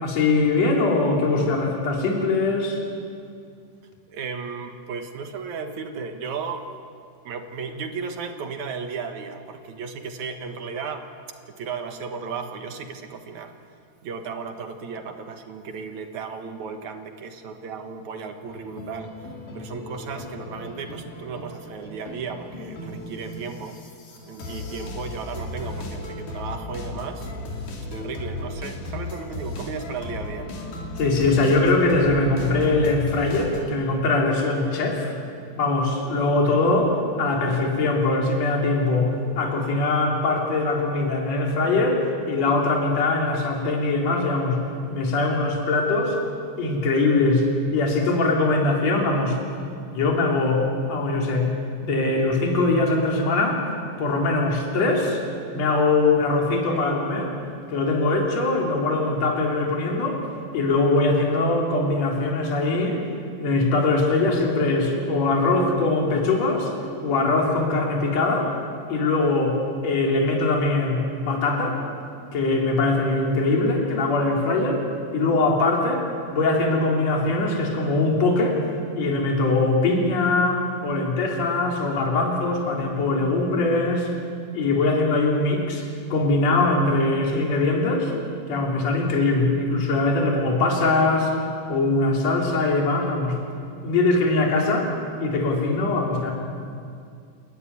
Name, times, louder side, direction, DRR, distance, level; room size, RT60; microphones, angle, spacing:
voice 1, 0.0-2.8 31.0-35.1 35.6-36.9 37.2-44.6 44.9-46.2 46.6-47.5 47.7-49.4 49.9-51.5 51.8-53.6 54.0-55.2 55.5-57.3 57.7-60.2 60.5-63.0 63.4-66.7 67.0-68.5 68.9-69.6 69.8-71.8 72.3-74.8 75.1-76.0 76.3-78.6 79.0-84.1 84.5-88.1 88.5-91.3 91.7-93.4 93.8-94.9 95.2-96.3, left 2 dB, 55° left, 0 dB, 4.1 m, -22 dB
voice 2, 4.1-6.7 7.3-11.1 11.5-13.5 14.0-19.1 19.5-23.8 24.2-27.3 27.9-30.5, right 5 dB, 70° right, 6 dB, 2.7 m, -34 dB
sound 1, 18.5-33.7, left 2 dB, 80° left, 4.2 m, -36 dB
29.5 x 13.5 x 9.8 m, 2.3 s
omnidirectional pair, 3.6 m